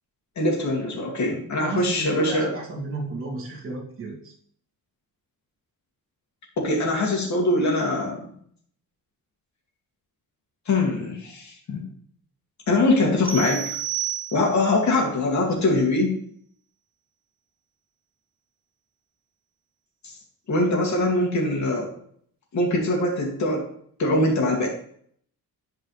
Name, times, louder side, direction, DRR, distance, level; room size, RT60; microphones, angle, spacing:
voice 1, 0.4-2.5 6.6-8.3 10.7-11.8 12.7-13.6 14.3-16.2 20.0-20.2 20.5-21.9 22.5-23.7 24.0-24.7, left 2 dB, 50° left, -1 dB, 2.7 m, -23 dB
voice 2, 1.6-4.3, right 3 dB, 35° right, -4 dB, 2.8 m, -33 dB
sound 1, 13.3-14.8, right 11 dB, 15° right, 1.0 m, -30 dB
11.0 x 5.4 x 3.4 m, 0.63 s
cardioid pair, 135°, 36 cm